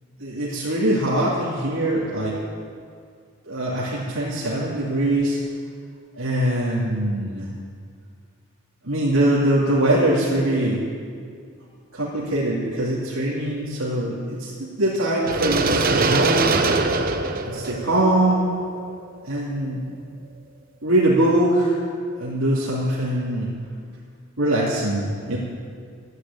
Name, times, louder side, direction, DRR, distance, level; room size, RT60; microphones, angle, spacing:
voice 1, 0.2-2.4 3.4-5.4 6.2-7.5 8.8-10.8 11.9-16.6 17.5-18.5 19.2-19.8 20.8-21.8 22.2-23.5 24.4-25.4, right 1 dB, 75° right, -7 dB, 2.7 m, -22 dB
sound 1, 15.3-19.2, right 3 dB, 40° right, 0.9 m, -23 dB
13.5 x 9.8 x 8.8 m, 2.2 s
head